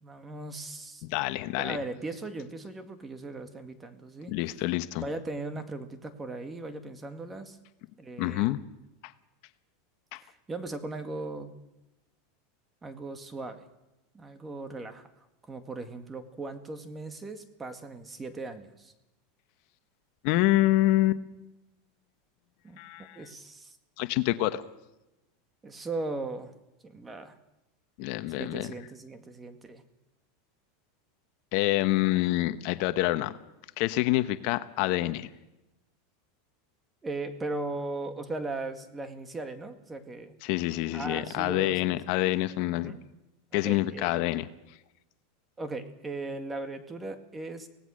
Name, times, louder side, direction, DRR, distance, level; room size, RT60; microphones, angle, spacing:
voice 1, 0.0-1.0 1.5-4.4 5.0-7.6 8.0-8.7 10.2-11.5 12.8-13.7 14.1-18.9 22.6-23.8 25.6-26.5 26.8-27.4 28.3-29.8 37.0-40.4 40.9-42.1 42.7-43.0 43.5-44.3 45.6-47.7, right 2 dB, 15° right, 8 dB, 2.0 m, -38 dB
voice 2, 1.1-1.8 4.3-5.0 8.2-8.6 9.0-9.1 10.1-10.2 20.2-21.2 22.8-23.2 24.0-24.6 28.0-28.7 31.5-33.3 33.8-35.3 40.4-42.9 43.5-44.5, left 16 dB, 55° left, 11 dB, 1.0 m, -27 dB
25.0 x 18.0 x 6.4 m, 0.96 s
supercardioid pair, 135°, 0 cm